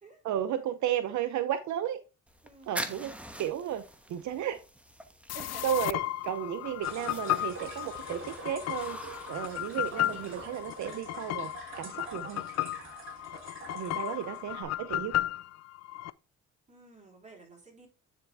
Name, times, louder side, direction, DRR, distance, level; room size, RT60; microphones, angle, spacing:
voice 1, 0.2-2.0 2.7-3.1 3.4-3.8 4.1-4.6 5.6-6.0 6.2-9.0 9.3-12.4 13.7-15.1, right 10 dB, 70° right, 0.7 m, -33 dB
sound 1, 2.3-10.9, right 1 dB, 5° right, 1.0 m, -45 dB
voice 2, 2.4-3.2 5.3-5.8 13.7-14.7 16.7-17.9, right 2 dB, 25° right, 3.7 m, -52 dB
sound 2, 5.3-16.1, left 15 dB, 60° left, 0.4 m, -34 dB
sound 3, 6.8-14.6, right 3 dB, 40° right, 2.9 m, -46 dB
9.5 x 4.5 x 3.3 m
cardioid pair, 90°, 30 cm